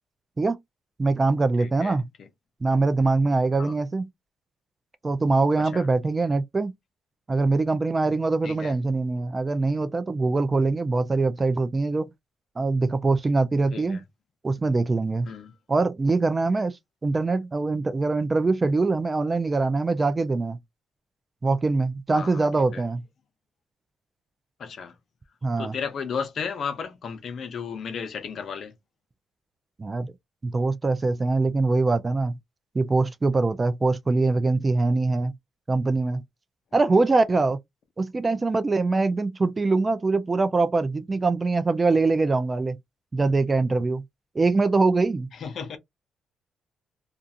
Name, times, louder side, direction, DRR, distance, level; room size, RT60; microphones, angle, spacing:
voice 1, 1.0-2.1 2.6-4.1 5.0-6.7 7.3-12.1 12.6-14.0 14.4-15.3 15.7-16.8 17.0-20.6 21.4-23.0 25.4-25.7 29.8-30.1 30.4-32.4 32.7-35.3 35.7-36.2 36.7-37.6 38.0-42.8 43.1-44.0 44.4-45.3, right 3 dB, 25° right, 0.4 m, -23 dB
voice 2, 1.6-2.0 3.6-3.7 5.7-5.9 8.4-8.7 13.7-14.0 15.3-15.5 22.1-22.4 22.7-22.8 24.6-24.9 25.6-28.7 45.4-45.8, left 6 dB, 60° left, 0.6 m, -34 dB
2.5 x 2.4 x 2.6 m
cardioid pair, 90°, 0 cm